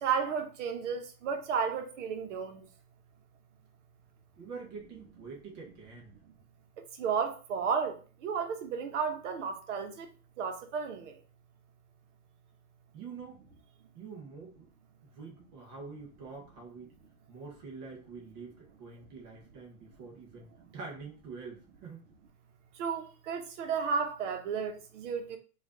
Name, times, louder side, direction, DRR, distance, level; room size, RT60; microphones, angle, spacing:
voice 1, 0.0-2.6 7.0-8.0 8.2-10.1 10.4-11.1 22.8-25.4, right 6 dB, 50° right, 0.8 m, -33 dB
voice 2, 4.4-6.2 12.9-13.4 14.0-14.7 15.1-16.9 17.3-22.1, right 4 dB, 15° right, 0.4 m, -46 dB
3.2 x 2.4 x 3.7 m
hypercardioid pair, 135°, 45 cm